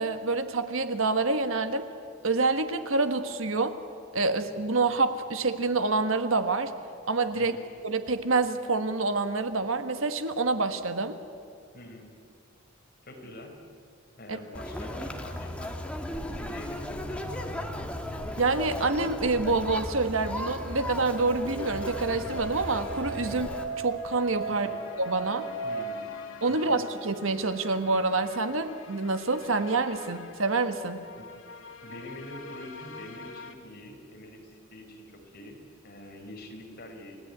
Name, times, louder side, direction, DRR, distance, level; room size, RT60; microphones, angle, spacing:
voice 1, 0.0-1.8 2.2-3.8 4.1-6.7 7.1-7.6 7.8-11.2 14.3-14.4 18.4-24.7 25.0-25.5 26.4-31.0, right 3 dB, 75° right, 9 dB, 1.5 m, -27 dB
voice 2, 7.3-7.7 11.7-12.1 13.0-13.5 14.2-17.6 24.5-24.8 25.6-26.1 26.5-26.8 31.2-31.3 31.8-35.6 35.8-37.2, left 1 dB, 50° left, 1 dB, 5.2 m, -45 dB
Conversation, 14.5-23.6, left 1 dB, 5° left, 1.9 m, -36 dB
sound 1, 20.2-33.5, left 4 dB, 65° left, 2.1 m, -48 dB
Musical instrument, 20.5-25.8, right 3 dB, 45° right, 5.1 m, -37 dB
29.5 x 17.0 x 9.7 m, 2.3 s
head